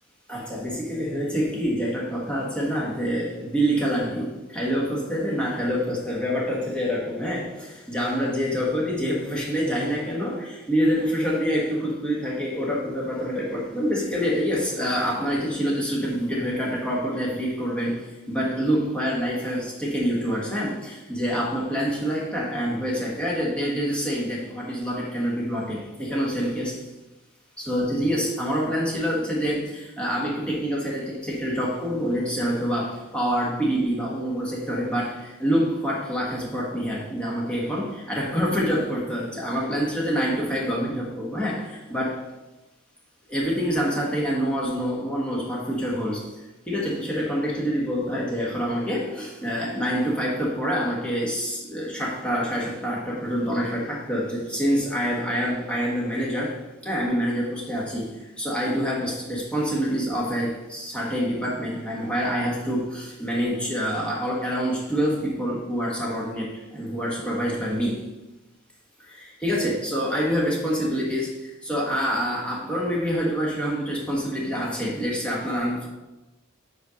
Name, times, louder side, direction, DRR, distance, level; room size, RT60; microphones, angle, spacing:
voice 1, 0.3-26.9 27.6-42.2 43.3-68.1 69.1-75.9, equal, 5° left, -5 dB, 1.4 m, -26 dB
5.1 x 4.5 x 5.2 m, 1.1 s
head